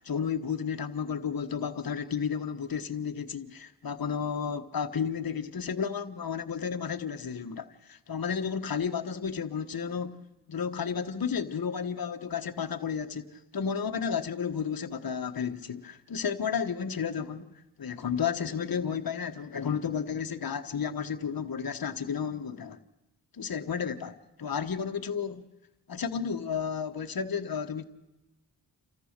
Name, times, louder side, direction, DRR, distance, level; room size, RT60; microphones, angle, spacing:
voice 1, 0.0-10.2 10.5-22.8 23.3-25.5 25.9-27.8, left 7 dB, 60° left, 1.3 m, -32 dB
29.0 x 14.0 x 6.7 m
cardioid pair, 70°, 40 cm